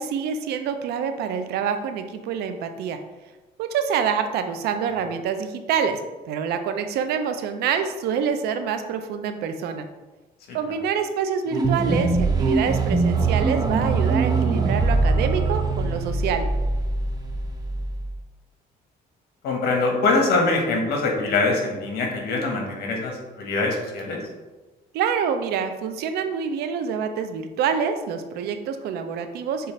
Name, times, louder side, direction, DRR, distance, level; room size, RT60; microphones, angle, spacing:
voice 1, 0.0-3.0 3.6-6.0 6.3-9.9 10.5-16.5 24.9-29.7, right 7 dB, 85° right, 8 dB, 0.5 m, -26 dB
sound 1, 11.5-18.1, right 3 dB, 25° right, 0.6 m, -22 dB
voice 2, 19.4-24.2, left 3 dB, 75° left, 1 dB, 1.1 m, -23 dB
6.7 x 2.5 x 3.1 m, 1.2 s
cardioid pair, 125°, 16 cm